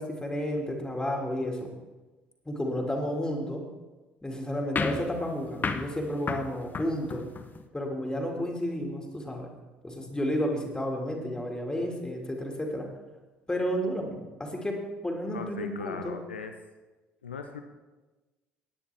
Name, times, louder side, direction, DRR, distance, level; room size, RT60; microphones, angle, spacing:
voice 1, 0.0-1.7 2.5-3.6 4.2-7.3 7.7-9.5 9.8-12.9 13.5-16.2, equal, 15° left, 1 dB, 2.3 m, -32 dB
sound 1, 4.8-7.6, left 4 dB, 30° left, 1.0 m, -34 dB
voice 2, 15.3-16.6 17.2-17.6, left 5 dB, 85° left, 6 dB, 0.7 m, -38 dB
18.5 x 9.5 x 3.5 m, 1.2 s
figure-of-eight pair, 55°, 6 cm